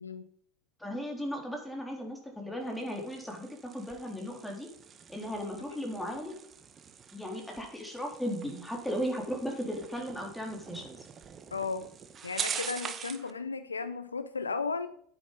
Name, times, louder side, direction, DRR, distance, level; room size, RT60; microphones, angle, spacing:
voice 1, 0.8-4.7 5.1-6.4 7.1-11.0, equal, 5° left, 1 dB, 3.8 m, -36 dB
sound 1, 2.6-13.3, right 7 dB, 30° right, 1.4 m, -43 dB
voice 2, 11.5-11.9 12.2-14.9, left 4 dB, 90° left, 13 dB, 0.5 m, -34 dB
10.0 x 8.9 x 5.4 m, 0.64 s
hypercardioid pair, 80°, 0 cm